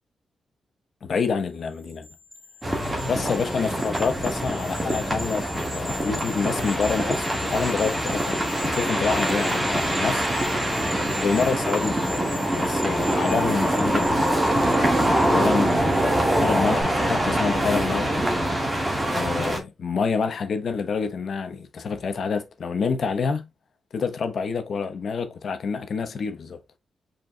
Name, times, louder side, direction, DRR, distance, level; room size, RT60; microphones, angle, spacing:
voice 1, 1.0-2.1 3.1-10.3 11.2-14.3 14.6-14.8 15.2-18.3 19.1-23.5 23.9-26.6, left 5 dB, 60° left, 0.8 m, -27 dB
sound 1, 1.7-16.3 16.7-16.8, left 3 dB, 5° left, 2.8 m, -40 dB
sound 2, 2.6-19.6, right 1 dB, 20° right, 1.6 m, -24 dB
5.2 x 4.5 x 2.2 m
wide cardioid pair, 130°, 0 cm